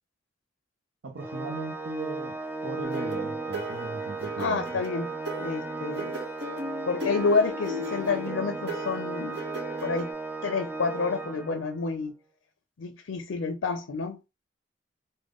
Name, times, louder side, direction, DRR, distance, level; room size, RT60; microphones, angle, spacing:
voice 1, 1.0-4.6, right 3 dB, 80° right, 0.6 m, -39 dB
Organ, 1.2-11.9, right 3 dB, 10° right, 0.4 m, -35 dB
sound 1, 2.8-10.1, left 1 dB, 55° right, 1.0 m, -37 dB
voice 2, 4.4-5.1 5.4-6.1 6.9-9.4 9.8-10.1 10.4-12.1 12.8-14.2, left 4 dB, 75° left, 0.4 m, -29 dB
3.5 x 2.1 x 3.7 m
head